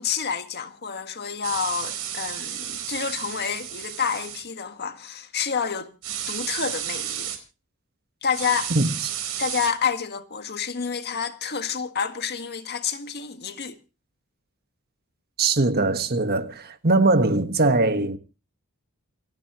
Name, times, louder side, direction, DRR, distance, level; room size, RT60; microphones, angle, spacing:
voice 1, 0.0-5.9 6.3-7.3 8.2-8.7 9.4-13.8, left 6 dB, 50° left, 1.7 m, -29 dB
sound 1, 1.4-4.4 6.0-7.4 8.3-9.7, right 10 dB, 85° right, 4.5 m, -32 dB
voice 2, 15.4-18.2, right 2 dB, 45° right, 1.5 m, -21 dB
29.0 x 10.5 x 3.0 m
head